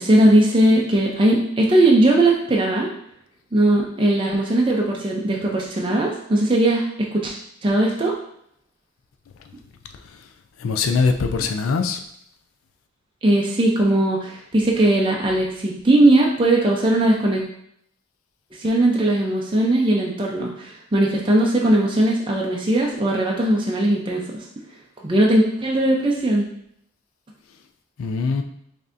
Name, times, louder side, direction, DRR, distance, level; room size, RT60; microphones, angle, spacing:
voice 1, 0.0-2.9 3.5-7.3 7.6-8.1 13.2-17.4 18.6-24.4 25.0-26.5, right 1 dB, 25° right, -2 dB, 0.5 m, -19 dB
voice 2, 10.6-12.0 28.0-28.4, left 4 dB, 85° left, 6 dB, 0.4 m, -22 dB
5.4 x 2.7 x 2.6 m, 0.71 s
head